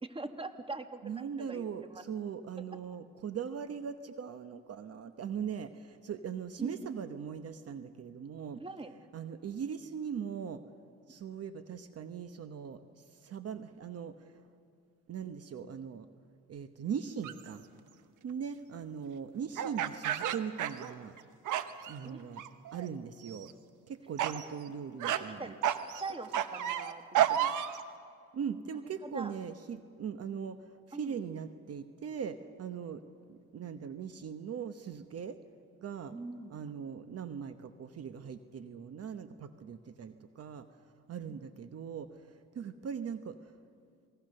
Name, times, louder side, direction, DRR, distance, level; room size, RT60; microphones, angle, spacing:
voice 1, 0.0-2.0 6.6-7.1 8.5-8.9 22.0-22.2 25.0-25.7 26.0-27.5 29.0-29.3 30.9-31.2 36.1-36.5 41.3-41.4, right 3 dB, 20° right, 8 dB, 1.5 m, -43 dB
voice 2, 1.0-8.6 9.1-10.6 11.1-14.2 15.1-16.1 16.5-17.6 18.2-21.2 21.9-22.4 22.7-23.5 23.9-25.5 28.3-33.0 33.3-35.4 35.8-36.1 36.5-40.7 41.1-42.2 42.5-43.5, right 7 dB, 55° right, 9 dB, 1.1 m, -40 dB
sound 1, 17.2-17.5 19.6-21.2 21.5-22.0 22.4-22.9 23.2-23.5 24.2-24.4 25.0-25.2 25.6-27.8, right 11 dB, 80° right, 1.1 m, -31 dB
27.5 x 20.5 x 6.6 m, 2.3 s
cardioid pair, 90°, 30 cm